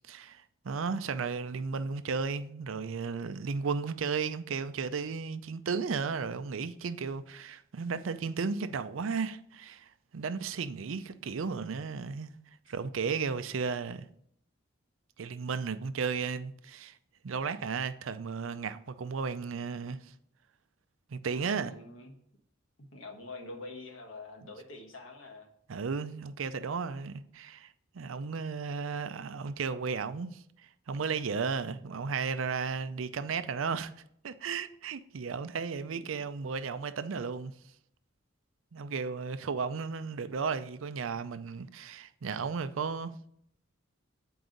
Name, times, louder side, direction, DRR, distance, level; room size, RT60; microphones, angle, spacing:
voice 1, 0.1-12.3 12.7-14.0 15.2-17.0 17.2-20.1 21.1-21.7 25.7-33.9 34.2-37.5 38.7-43.1, right 5 dB, 80° right, 0.5 m, -34 dB
voice 2, 21.3-22.1 22.8-25.5, left 2 dB, 80° left, 1.3 m, -46 dB
7.9 x 4.7 x 3.9 m
head